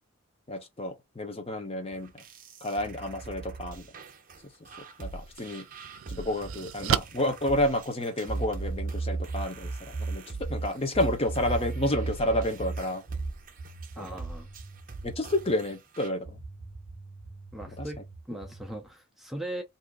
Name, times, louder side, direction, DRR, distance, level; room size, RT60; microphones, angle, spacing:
voice 1, 0.5-2.2 2.6-3.8 5.0-5.6 6.1-13.0 14.0-14.1 15.0-16.4 17.8-17.9, left 1 dB, 30° left, 0.8 m, -30 dB
sound 1, 1.9-16.1, right 3 dB, 40° right, 0.7 m, -44 dB
sound 2, 4.7-4.8 5.4-8.4, right 9 dB, 75° right, 0.4 m, -34 dB
sound 3, 8.3-15.6 16.2-18.7, right 3 dB, 85° left, 1.4 m, -36 dB
voice 2, 14.0-14.5 17.5-18.0 18.3-19.6, right 1 dB, ahead, 0.5 m, -38 dB
2.7 x 2.5 x 3.5 m
head